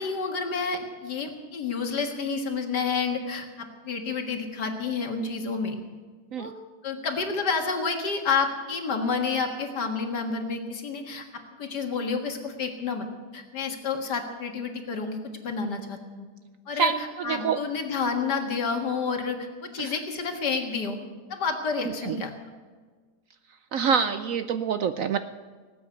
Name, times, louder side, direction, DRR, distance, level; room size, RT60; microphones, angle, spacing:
voice 1, 0.0-5.8 6.4-6.5 6.8-11.2 11.6-13.1 13.3-16.3 16.7-21.0 21.3-22.3, left 5 dB, 75° left, 4 dB, 2.3 m, -29 dB
voice 2, 16.8-17.6 19.8-19.9 22.0-22.2 23.7-25.2, right 6 dB, 65° right, 11 dB, 0.8 m, -26 dB
18.5 x 8.6 x 8.4 m, 1.5 s
omnidirectional pair, 1.8 m